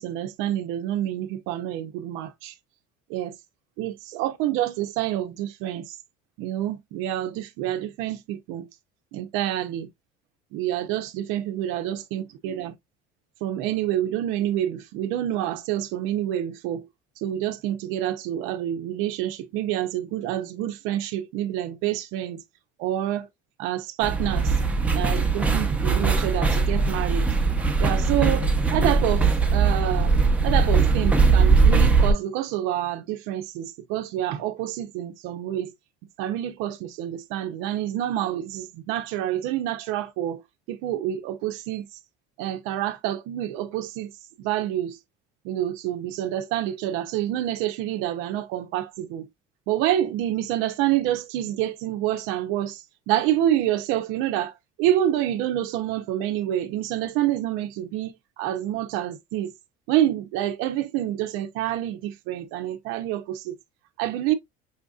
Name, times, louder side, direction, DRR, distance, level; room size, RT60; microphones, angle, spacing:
voice 1, 0.0-2.6 3.1-3.4 3.8-6.0 6.4-8.7 9.1-9.9 10.5-12.7 13.4-16.8 17.2-22.4 22.8-23.3 23.6-24.6 24.9-27.3 27.8-30.1 30.4-35.7 36.2-40.4 40.7-41.8 42.4-44.1 44.4-45.0 45.4-49.3 49.7-58.1 58.4-59.5 59.9-63.5 64.0-64.3, right 12 dB, 75° right, 0.5 m, -27 dB
sound 1, 24.0-32.1, right 4 dB, 5° right, 0.7 m, -20 dB
5.5 x 2.5 x 2.3 m
cardioid pair, 140°, 21 cm